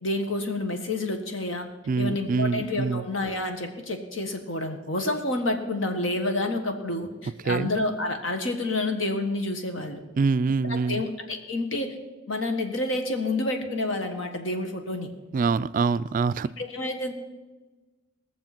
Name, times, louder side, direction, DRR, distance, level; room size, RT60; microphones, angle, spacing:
voice 1, 0.0-1.7 2.0-10.0 10.6-12.0 12.3-15.1 16.6-17.1, left 2 dB, 75° left, 5 dB, 1.5 m, -29 dB
voice 2, 1.9-3.0 7.5-7.7 10.2-11.0 15.3-16.5, right 4 dB, 45° right, 17 dB, 0.3 m, -25 dB
19.5 x 6.9 x 6.0 m, 1.2 s
head